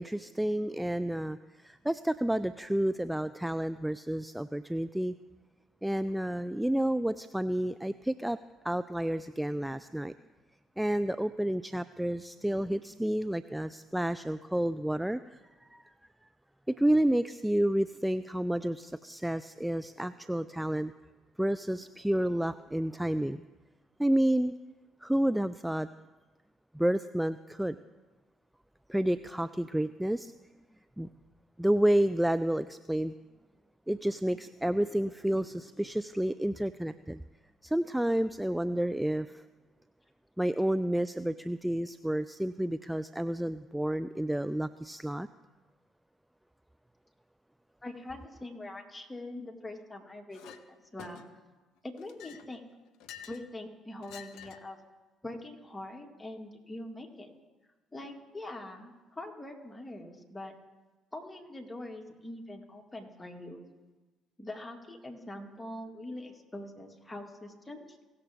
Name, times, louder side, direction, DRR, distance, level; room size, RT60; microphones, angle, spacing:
voice 1, 0.0-5.1 5.8-8.4 8.6-10.1 10.8-15.4 15.7-15.8 16.7-20.9 21.4-23.4 24.0-24.5 25.0-25.9 26.7-27.8 28.9-30.3 31.0-31.1 31.6-33.1 33.9-37.2 37.6-39.4 40.4-45.3, right 1 dB, 5° right, 13 dB, 0.3 m, -30 dB
voice 2, 47.8-51.2 51.8-52.6 53.3-54.8 55.2-57.3 57.9-60.5 61.1-63.6 64.4-68.0, left 1 dB, 15° left, 2 dB, 2.0 m, -43 dB
Chink clink, 50.3-50.6 51.0-51.5 52.0-53.5 54.0-54.7, left 9 dB, 70° left, 0.6 m, -49 dB
17.0 x 7.0 x 3.5 m, 1.2 s
hypercardioid pair, 50°, 0 cm